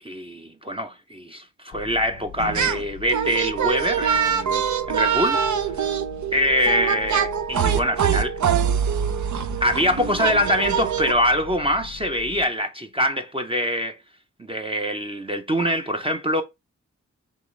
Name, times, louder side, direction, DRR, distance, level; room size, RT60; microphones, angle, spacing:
voice 1, 0.0-4.6 4.9-5.9 6.3-8.4 9.6-14.0 14.5-16.4, equal, 20° right, 0.5 m, -24 dB
sound 1, 1.7-12.5, left 9 dB, 75° left, 0.6 m, -41 dB
sound 2, 2.4-2.8 3.1-11.1, right 8 dB, 75° right, 0.5 m, -24 dB
5.5 x 3.1 x 3.1 m
wide cardioid pair, 90°, 29 cm